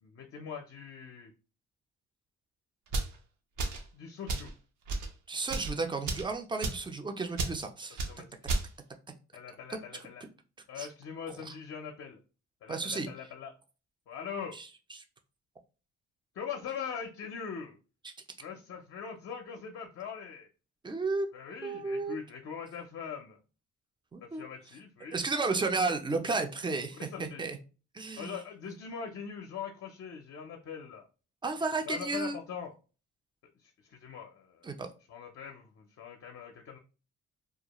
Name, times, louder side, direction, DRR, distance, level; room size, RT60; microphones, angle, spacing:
voice 1, 0.0-1.3 3.9-4.5 8.0-8.5 9.3-10.2 10.7-12.2 12.6-13.5 14.1-14.6 16.3-17.8 18.4-20.5 21.3-23.4 24.2-25.2 27.0-27.5 28.2-31.1 31.9-32.7 33.6-34.7 35.1-36.8, left 7 dB, 50° left, 3 dB, 0.5 m, -42 dB
sound 1, 2.9-3.2 3.6-3.9 4.3-4.5 4.9-5.1 5.5-5.7 6.1-6.3 6.6-6.9 7.4-7.6 8.0-8.1 8.5-8.7, right 3 dB, 75° right, 0.7 m, -32 dB
voice 2, 5.3-8.1 9.7-9.8 10.8-10.9 11.5-11.6 12.7-13.1 14.6-15.0 18.0-18.1 20.8-21.3 21.6-22.2 24.1-24.4 25.1-27.6 27.9-28.4 28.7-28.8 31.4-32.4 34.6-34.9, right 3 dB, 15° right, 6 dB, 0.4 m, -33 dB
2.3 x 2.1 x 2.9 m, 0.34 s
cardioid pair, 90°, 30 cm